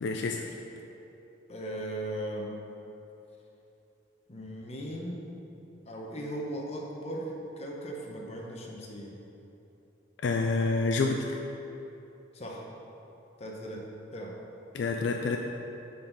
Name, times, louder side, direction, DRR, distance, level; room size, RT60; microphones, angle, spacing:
voice 1, 0.0-0.5 10.2-11.3 14.7-15.4, left 3 dB, 65° left, 3 dB, 0.4 m, -28 dB
voice 2, 1.5-2.5 4.3-5.2 5.9-9.2 12.3-12.6 13.4-13.8 14.1-14.3, right 1 dB, 35° left, -1 dB, 0.8 m, -38 dB
10.5 x 4.0 x 3.9 m, 3.0 s
head